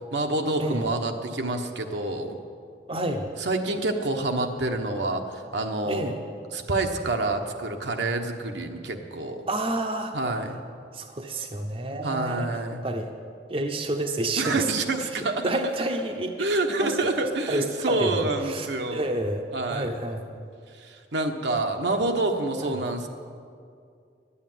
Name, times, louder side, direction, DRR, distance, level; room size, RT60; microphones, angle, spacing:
voice 1, 0.1-2.4 3.4-6.0 6.5-9.4 10.1-10.6 12.0-12.8 14.4-15.9 16.4-19.2 19.5-20.0 20.7-23.1, right 2 dB, 80° right, 4 dB, 1.1 m, -27 dB
voice 2, 2.9-3.3 5.8-6.2 9.5-10.1 10.9-12.5 12.8-13.1 13.5-14.7 15.0-16.3 16.7-17.1 17.5-18.2 18.4-20.4 22.6-22.8, right 1 dB, 30° right, 4 dB, 0.7 m, -29 dB
11.0 x 8.5 x 9.2 m, 2.3 s
head